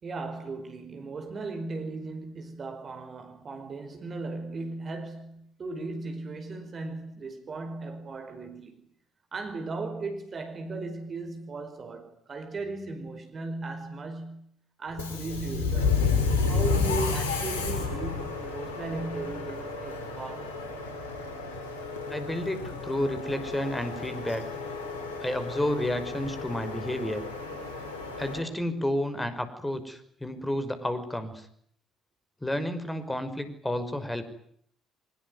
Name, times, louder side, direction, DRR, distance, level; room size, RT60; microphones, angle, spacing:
voice 1, 0.0-8.9 9.3-14.5 14.8-16.1 16.5-20.6, right 3 dB, 40° right, 5.0 m, -37 dB
Subway metro underground, 14.9-28.4, left 4 dB, 75° left, 6.1 m, -31 dB
voice 2, 22.1-24.5 25.2-27.2 28.2-31.5 32.4-34.2, left 1 dB, 10° left, 5.7 m, -31 dB
24.5 x 22.5 x 9.7 m
figure-of-eight pair, 50°, 0 cm